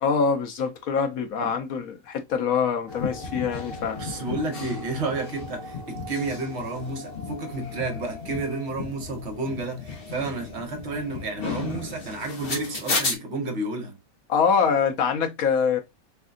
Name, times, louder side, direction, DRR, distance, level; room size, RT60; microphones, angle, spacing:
voice 1, 0.0-4.0 14.3-15.8, left 6 dB, 85° left, 1.2 m, -24 dB
sound 1, 2.9-13.1, left 4 dB, 45° left, 1.2 m, -34 dB
voice 2, 4.0-14.0, right 2 dB, 55° right, 1.2 m, -31 dB
3.6 x 3.3 x 2.4 m
omnidirectional pair, 1.4 m